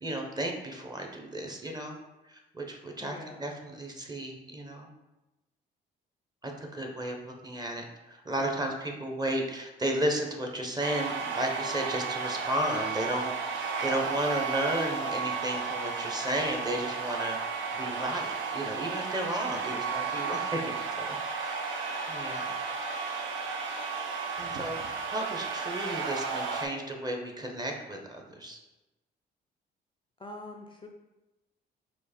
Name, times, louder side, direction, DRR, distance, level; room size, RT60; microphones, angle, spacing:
voice 1, 0.0-2.0 2.2-4.9 6.4-13.3 13.8-17.4 17.7-21.6 22.1-22.5 24.4-28.6, right 1 dB, 20° right, 2 dB, 0.8 m, -33 dB
voice 2, 3.0-3.5 30.2-30.9, left 2 dB, 25° left, 3 dB, 0.5 m, -44 dB
sound 1, 10.8-26.7, right 5 dB, 75° right, 0.7 m, -33 dB
4.6 x 2.5 x 4.3 m, 1.0 s
cardioid pair, 90°, 20 cm